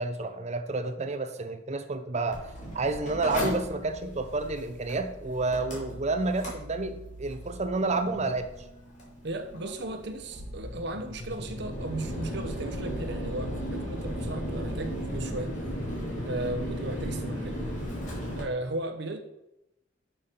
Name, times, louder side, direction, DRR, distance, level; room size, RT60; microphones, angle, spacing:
voice 1, 0.0-8.7, right 3 dB, 35° right, 8 dB, 0.7 m, -30 dB
Mechanical fan, 2.3-18.4, equal, 40° left, 3.0 m, -36 dB
voice 2, 9.2-15.5 16.2-17.6 18.4-19.2, right 2 dB, 65° right, 7 dB, 1.0 m, -35 dB
6.8 x 5.9 x 5.6 m, 0.88 s
head